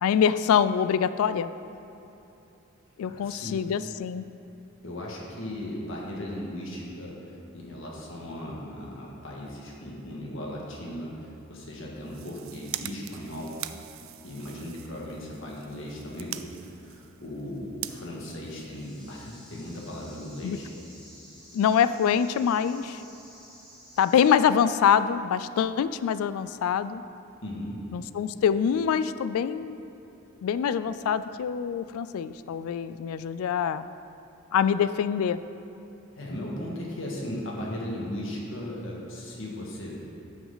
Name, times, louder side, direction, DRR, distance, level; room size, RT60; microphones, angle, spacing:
voice 1, 0.0-1.5 3.0-4.3 20.4-20.6 21.5-23.0 24.0-27.0 27.9-29.8 30.4-33.9 34.5-35.4, left 8 dB, 80° left, 14 dB, 0.3 m, -25 dB
voice 2, 3.1-3.7 4.8-13.6 14.2-20.7 27.4-27.8 36.2-40.0, left 1 dB, 60° left, -3 dB, 1.7 m, -37 dB
sound 1, 11.9-19.2, right 13 dB, 70° right, 0.3 m, -43 dB
sound 2, 18.2-24.9, equal, ahead, 1.9 m, -53 dB
13.0 x 6.1 x 4.0 m, 2.9 s
head